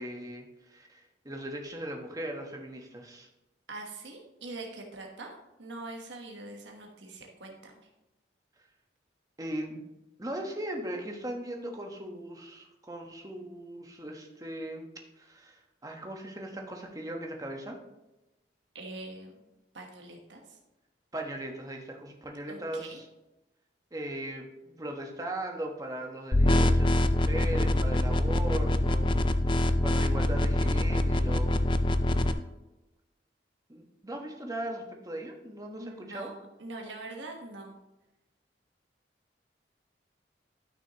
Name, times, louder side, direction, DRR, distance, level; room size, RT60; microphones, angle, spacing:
voice 1, 0.0-3.3 9.4-9.8 10.2-14.9 15.2-17.8 21.1-23.1 23.9-29.2 29.4-31.6 33.7-36.3, right 1 dB, 20° right, 2 dB, 1.2 m, -38 dB
voice 2, 3.7-7.7 18.7-19.3 19.7-20.6 22.5-23.0 35.7-37.8, right 2 dB, 85° right, 1 dB, 1.3 m, -43 dB
sound 1, 26.3-32.3, left 1 dB, 30° left, 0.4 m, -25 dB
12.5 x 6.1 x 3.0 m, 0.98 s
head